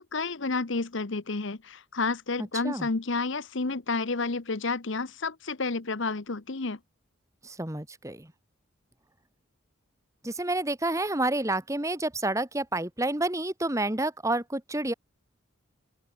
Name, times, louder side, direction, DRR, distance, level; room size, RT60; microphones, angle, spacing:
voice 1, 0.0-6.8, left 3 dB, 60° left, 1.0 m, -30 dB
voice 2, 7.4-8.3 10.2-14.9, right 2 dB, 15° right, 1.5 m, -29 dB
open air
head